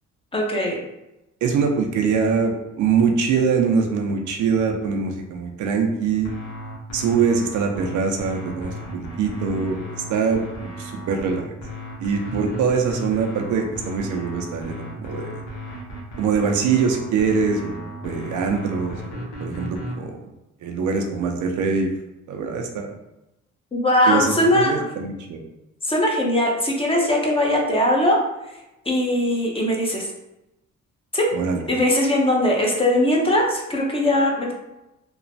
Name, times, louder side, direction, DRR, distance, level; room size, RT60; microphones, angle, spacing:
voice 1, 0.3-0.8 23.7-24.7 25.8-28.2 28.9-30.1 31.1-31.3 31.7-34.5, left 1 dB, 20° left, -1 dB, 0.7 m, -20 dB
voice 2, 1.4-6.3 6.9-11.5 12.0-15.4 16.2-20.2 20.6-21.9 22.3-22.9 24.1-25.4 31.3-31.6, right 5 dB, 75° right, 3 dB, 0.5 m, -23 dB
sound 1, 6.2-20.0, left 1 dB, 80° left, 0.9 m, -35 dB
3.0 x 2.1 x 2.6 m, 0.92 s
cardioid pair, 90°, 30 cm